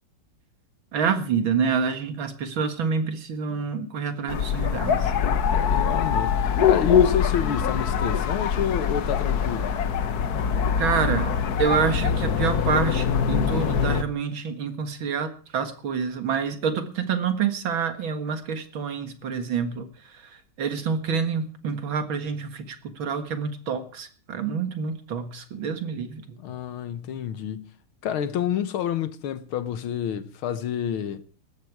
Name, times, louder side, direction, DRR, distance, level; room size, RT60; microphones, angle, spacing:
voice 1, 0.9-5.1 10.8-11.3 11.6-19.9 20.6-26.4, right 6 dB, 65° right, 2.4 m, -27 dB
sound 1, 4.3-14.0, left 7 dB, 55° left, 1.3 m, -23 dB
voice 2, 5.5-9.7 26.4-27.7 28.0-31.2, left 9 dB, 75° left, 1.8 m, -29 dB
18.5 x 13.5 x 4.8 m
omnidirectional pair, 2.4 m